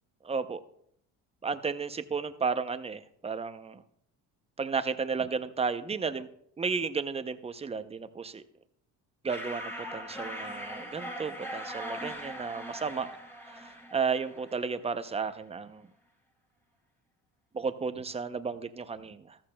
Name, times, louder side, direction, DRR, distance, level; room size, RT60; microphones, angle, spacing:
voice 1, 0.2-0.6 1.4-3.8 4.6-6.3 6.6-8.4 9.2-13.1 13.5-15.8 17.5-19.4, right 5 dB, 15° right, 11 dB, 0.5 m, -33 dB
sound 1, 9.3-14.8, equal, 5° left, 1.9 m, -40 dB
14.5 x 13.5 x 2.2 m, 0.69 s
cardioid pair, 120°, 39 cm